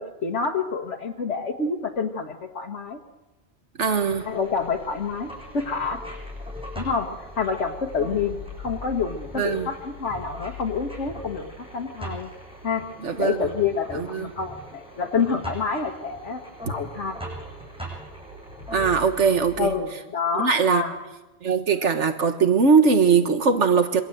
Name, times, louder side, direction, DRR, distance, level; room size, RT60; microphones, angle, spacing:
voice 1, 0.0-3.0 4.3-6.0 6.8-12.3 12.6-12.8 13.2-16.4 16.7-17.2 19.6-21.0, left 5 dB, 90° left, 1 dB, 1.8 m, -28 dB
sound 1, 3.8-19.7, left 1 dB, 5° right, 6.9 m, -40 dB
voice 2, 3.8-4.3 9.4-9.7 13.0-13.5 13.9-14.3 18.7-19.7 20.4-20.8 21.4-24.0, right 5 dB, 90° right, 7 dB, 1.8 m, -20 dB
26.5 x 24.5 x 7.9 m, 1.1 s
omnidirectional pair, 1.2 m